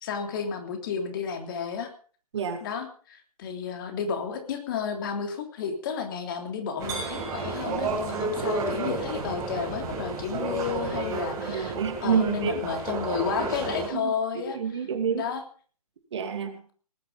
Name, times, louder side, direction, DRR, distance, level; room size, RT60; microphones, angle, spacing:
voice 1, 0.0-1.9 2.6-11.7 12.0-14.6 15.1-15.4, left 6 dB, 35° left, 5 dB, 3.2 m, -32 dB
voice 2, 2.3-2.7 11.5-12.6 13.9-15.2 16.1-16.6, right 6 dB, 45° right, 8 dB, 2.6 m, -28 dB
sound 1, 6.8-13.9, right 3 dB, 20° right, 6.7 m, -31 dB
19.0 x 11.0 x 5.3 m, 0.42 s
figure-of-eight pair, 135°, 19 cm